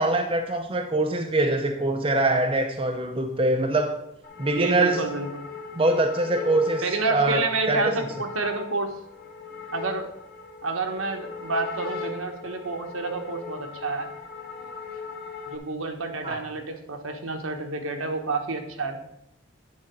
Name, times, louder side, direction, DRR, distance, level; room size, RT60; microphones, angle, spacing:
voice 1, 0.0-4.0 4.4-5.0 5.7-6.8 7.1-7.9 16.2-16.4, right 2 dB, 25° right, 0.6 m, -23 dB
sound 1, 4.2-15.6, left 5 dB, 45° left, 1.5 m, -38 dB
voice 2, 4.5-5.3 6.8-8.9 9.7-10.1 10.6-14.1 15.5-19.0, right 3 dB, 75° right, 1.2 m, -29 dB
9.8 x 4.2 x 6.1 m
head